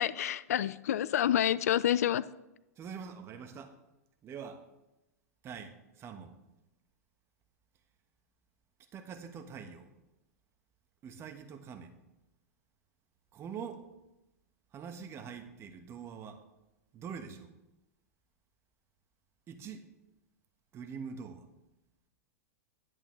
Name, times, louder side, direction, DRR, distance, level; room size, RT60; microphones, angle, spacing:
voice 1, 0.0-2.2, left 11 dB, 70° left, 18 dB, 0.4 m, -28 dB
voice 2, 2.8-3.7 4.2-4.6 5.4-6.3 8.9-9.9 11.0-11.9 13.3-13.9 14.7-16.4 16.9-17.5 19.5-19.9 20.7-21.5, right 6 dB, 30° right, 6 dB, 1.2 m, -44 dB
10.5 x 8.7 x 3.2 m, 0.94 s
hypercardioid pair, 110°, 9 cm